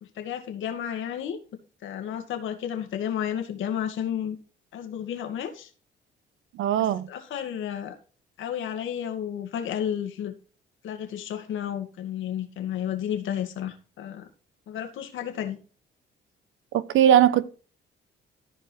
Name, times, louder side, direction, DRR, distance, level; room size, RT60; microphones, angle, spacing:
voice 1, 0.2-1.4 1.8-4.4 4.7-5.7 6.8-7.9 8.4-10.3 10.8-14.3 14.7-15.6, left 9 dB, 80° left, 2.3 m, -32 dB
voice 2, 6.5-7.1 16.7-17.4, right 10 dB, 80° right, 1.0 m, -20 dB
14.5 x 5.0 x 4.6 m
cardioid pair, 90°, 20 cm